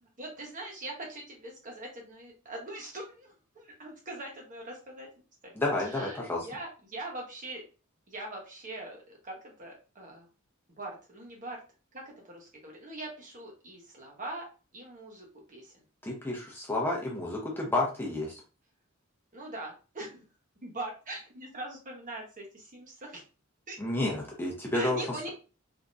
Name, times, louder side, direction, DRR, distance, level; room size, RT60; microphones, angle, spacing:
voice 1, 0.0-5.1 5.4-7.6 8.1-10.3 10.7-11.6 11.9-14.4 14.7-15.7 19.3-20.3 20.6-23.2 23.7-23.8 24.7-25.3, right 2 dB, 40° right, 0 dB, 1.1 m, -42 dB
voice 2, 5.6-6.4 16.0-18.4 23.8-25.3, left 2 dB, 10° left, -2 dB, 0.8 m, -31 dB
3.5 x 2.8 x 2.6 m, 0.34 s
head